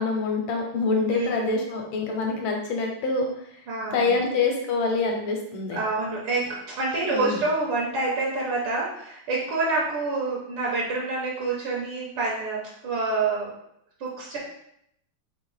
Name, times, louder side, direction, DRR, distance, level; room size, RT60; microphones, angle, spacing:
voice 1, 0.0-3.3 3.9-5.8 7.1-7.4, left 3 dB, 75° left, 1 dB, 1.4 m, -25 dB
voice 2, 1.1-1.5 3.7-4.3 5.7-13.5 14.0-14.4, right 3 dB, 75° right, -4 dB, 1.7 m, -27 dB
4.1 x 2.8 x 3.1 m, 0.76 s
omnidirectional pair, 2.4 m